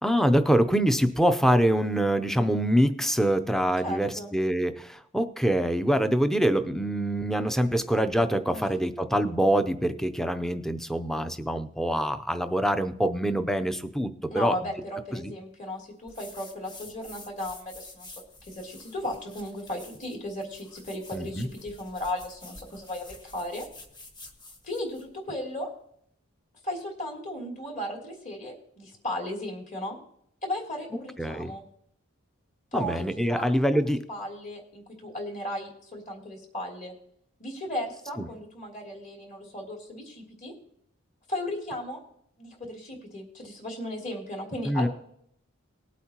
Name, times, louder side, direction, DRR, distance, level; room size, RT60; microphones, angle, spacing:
voice 1, 0.0-14.6 15.1-15.3 21.1-21.5 31.2-31.5 32.7-34.1 38.2-38.3 44.6-44.9, equal, ahead, 10 dB, 0.5 m, -25 dB
voice 2, 3.8-4.3 8.5-8.6 14.3-23.7 24.6-25.7 26.6-30.0 30.4-31.6 32.7-33.5 34.1-36.9 37.4-40.5 41.3-42.0 42.4-44.9, left 1 dB, 40° left, -1 dB, 3.1 m, -35 dB
sound 1, 16.1-25.1, left 2 dB, 20° left, 1.3 m, -49 dB
19.5 x 8.3 x 2.9 m, 0.68 s
head